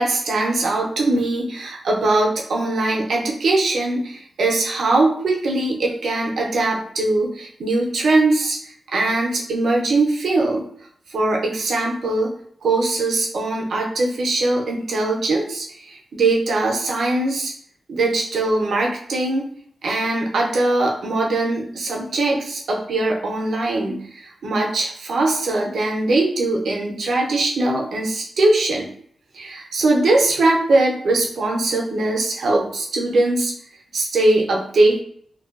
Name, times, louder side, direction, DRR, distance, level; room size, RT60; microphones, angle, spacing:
voice 1, 0.0-8.6 8.9-10.6 11.1-12.3 12.6-17.5 17.9-19.5 19.8-28.9 29.3-33.5 33.9-35.0, right 2 dB, 80° right, -1 dB, 0.5 m, -21 dB
2.6 x 2.2 x 2.4 m, 0.63 s
wide cardioid pair, 100°, 0 cm